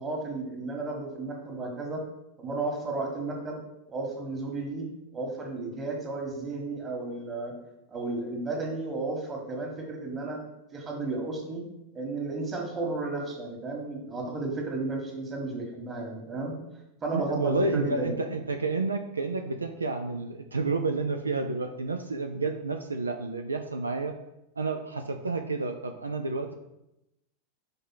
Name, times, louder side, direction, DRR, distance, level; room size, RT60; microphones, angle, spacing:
voice 1, 0.0-2.0 2.4-3.6 3.9-4.8 5.1-7.6 7.9-10.4 10.7-11.6 11.9-16.5 17.0-18.2, right 3 dB, 20° right, 1 dB, 1.6 m, -33 dB
voice 2, 17.1-24.1 24.6-26.5, right 3 dB, 75° right, 5 dB, 0.4 m, -30 dB
5.4 x 3.6 x 5.8 m, 0.88 s
figure-of-eight pair, 90°, 0 cm